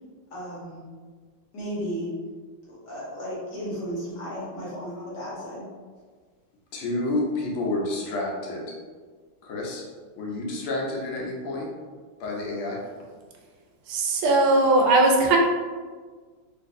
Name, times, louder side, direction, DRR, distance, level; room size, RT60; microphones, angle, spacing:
voice 1, 0.3-0.8 1.5-2.1 2.7-5.7, equal, 55° left, -7 dB, 1.7 m, -34 dB
voice 2, 6.7-8.8 9.4-9.8 10.2-11.7 12.2-12.8, left 2 dB, 80° left, -2 dB, 1.5 m, -29 dB
voice 3, 13.9-15.4, right 2 dB, 85° right, 1 dB, 1.5 m, -19 dB
3.9 x 2.5 x 2.6 m, 1.5 s
omnidirectional pair, 2.3 m